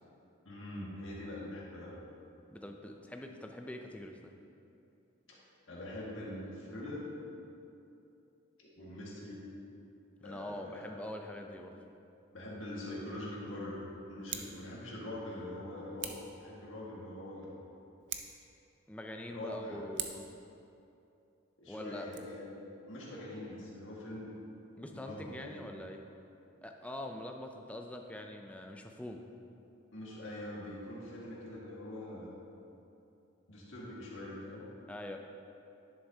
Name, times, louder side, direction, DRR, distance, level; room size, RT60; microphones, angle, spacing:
voice 1, 0.5-2.0 5.3-5.4 5.7-7.0 8.6-9.5 10.2-10.9 12.3-13.8 14.1-17.5 19.3-19.9 21.6-24.4 24.9-25.7 29.9-32.3 33.5-34.6, left 1 dB, 80° left, -5 dB, 1.8 m, -43 dB
voice 2, 2.5-4.3 10.2-11.8 18.9-20.3 21.7-22.1 24.8-26.0 26.6-29.4 34.9-35.2, left 1 dB, 5° left, 3 dB, 0.4 m, -44 dB
Scissors, 14.2-14.6 16.0-16.3 18.0-18.5 19.9-20.3 22.0-22.2, right 9 dB, 65° right, 0.5 m, -41 dB
11.0 x 6.9 x 2.8 m, 2.7 s
head